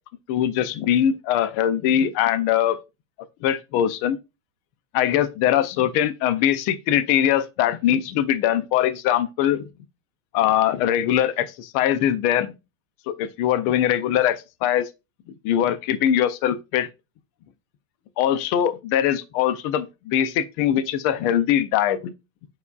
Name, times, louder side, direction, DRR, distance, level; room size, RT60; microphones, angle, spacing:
voice 1, 0.3-2.8 3.4-4.2 4.9-9.7 10.3-12.5 13.1-14.9 15.4-16.9 18.2-22.1, left 10 dB, 80° left, 1.5 m, -22 dB
9.5 x 4.7 x 2.3 m
omnidirectional pair, 2.4 m